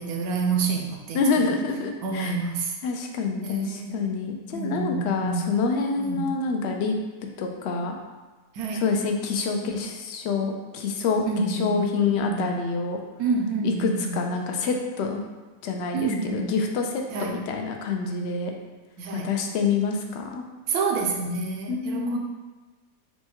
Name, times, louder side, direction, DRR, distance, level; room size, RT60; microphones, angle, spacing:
voice 1, 0.0-1.5 2.0-2.7 3.4-4.0 4.5-5.5 6.0-6.3 8.6-8.8 11.3-11.9 12.1-12.5 13.2-14.2 15.9-16.5 17.1-17.3 19.0-19.3 20.7-22.2, right 4 dB, 80° right, 1 dB, 1.1 m, -28 dB
voice 2, 1.1-2.3 2.8-7.0 7.4-8.0 8.7-13.0 13.6-15.2 15.6-18.5 19.1-20.4 21.7-22.2, left 4 dB, 65° left, 3 dB, 0.6 m, -27 dB
4.3 x 2.2 x 4.4 m, 1.3 s
omnidirectional pair, 1.6 m